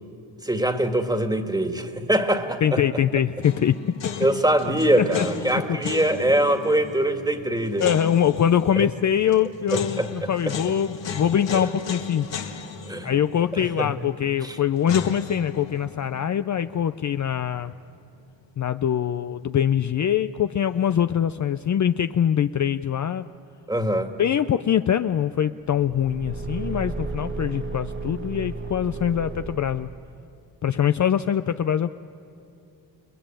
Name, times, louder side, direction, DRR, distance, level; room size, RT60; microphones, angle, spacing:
voice 1, 0.4-2.8 4.2-8.0 8.8-8.9 9.7-10.5 11.5-11.6 12.9-13.1 13.5-13.9 14.4-14.6 23.7-24.1, right 1 dB, 10° right, 6 dB, 2.0 m, -23 dB
voice 2, 2.6-3.8 4.0-4.2 5.0-5.3 5.5-5.8 7.8-12.3 13.0-17.7 18.6-23.3 24.2-29.9 30.6-31.9, left 9 dB, 40° left, 11 dB, 0.6 m, -23 dB
sound 1, 3.4-18.4 18.7-18.8 20.5-21.0, left 6 dB, 70° left, 2.3 m, -37 dB
Car / Engine, 25.7-30.2, right 3 dB, 25° right, 1.3 m, -34 dB
29.5 x 20.5 x 9.1 m, 2.6 s
cardioid pair, 80°, 46 cm